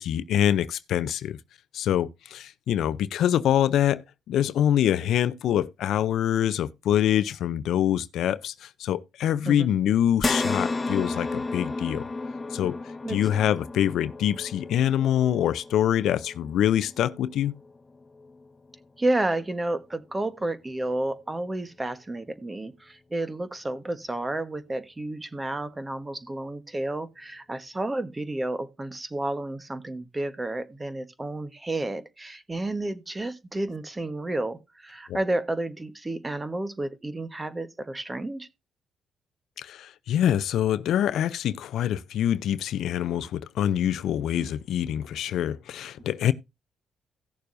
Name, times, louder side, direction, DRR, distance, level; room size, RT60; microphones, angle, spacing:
voice 1, 0.0-1.4 1.7-4.0 4.3-12.1 12.5-12.8 13.1-17.5 35.1-35.2 39.6-46.3, left 10 dB, 75° left, 0.5 m, -25 dB
sound 1, 10.2-18.8 19.3-19.4 20.8-20.9, left 3 dB, 20° left, 1.3 m, -33 dB
voice 2, 13.0-13.4 19.0-38.5, right 2 dB, 20° right, 1.3 m, -31 dB
17.0 x 6.8 x 2.6 m
cardioid pair, 90°, 0 cm